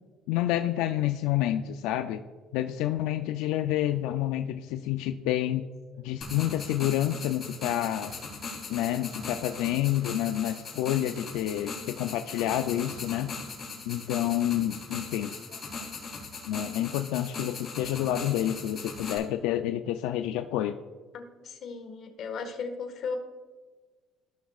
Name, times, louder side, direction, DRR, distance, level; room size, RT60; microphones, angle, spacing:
voice 1, 0.3-2.2 2.5-5.7 6.0-8.1 8.7-13.3 13.9-15.3 16.5-20.8, left 12 dB, 90° left, 7 dB, 0.4 m, -28 dB
sound 1, 6.2-19.2, left 4 dB, 35° left, 2.8 m, -39 dB
voice 2, 16.1-16.4 21.1-23.2, left 5 dB, 50° left, 4 dB, 1.5 m, -37 dB
15.0 x 6.1 x 2.4 m, 1.4 s
cardioid pair, 130°, 0 cm